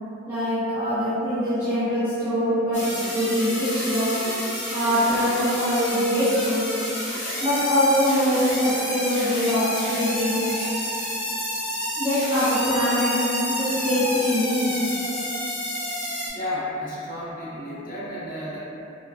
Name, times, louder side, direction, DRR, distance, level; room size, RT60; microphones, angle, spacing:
voice 1, 0.3-4.2 4.7-6.6 7.4-10.4 12.0-14.7, equal, 10° right, -16 dB, 0.7 m, -23 dB
sound 1, 2.7-16.3, left 1 dB, 60° left, 1.0 m, -29 dB
voice 2, 16.3-18.6, left 1 dB, 40° left, -9 dB, 0.7 m, -32 dB
3.5 x 2.2 x 2.2 m, 2.9 s
head